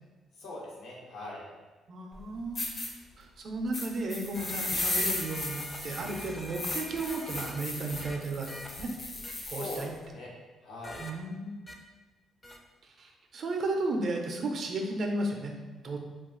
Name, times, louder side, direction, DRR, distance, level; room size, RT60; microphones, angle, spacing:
voice 1, 0.4-1.4 9.5-10.3 10.6-11.0, left 2 dB, 80° left, -4 dB, 0.9 m, -41 dB
voice 2, 1.9-2.6 3.2-8.9 9.5-9.9 11.0-11.5 12.8-15.5 15.8-16.0, right 2 dB, 55° right, 2 dB, 0.4 m, -34 dB
sound 1, 2.1-2.2 2.5-2.9 3.7-9.9, left 2 dB, 50° left, 0.7 m, -35 dB
sound 2, 4.3-7.6 7.9-8.2 8.5-8.7 9.2-9.3 10.8-11.1 11.7-11.8 12.4-12.6, left 1 dB, 15° left, 0.4 m, -44 dB
2.5 x 2.3 x 3.7 m, 1.3 s
cardioid pair, 90°, 0 cm